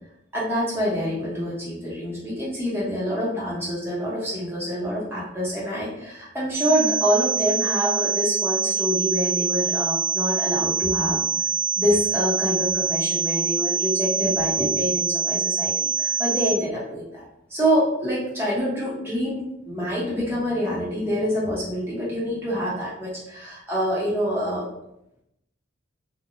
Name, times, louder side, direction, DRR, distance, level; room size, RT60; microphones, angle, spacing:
voice 1, 0.3-11.2 11.8-17.2 17.5-24.7, equal, 10° right, -7 dB, 0.7 m, -26 dB
sound 1, 6.5-16.5, right 6 dB, 50° right, 1.1 m, -25 dB
2.9 x 2.1 x 2.5 m, 0.82 s
head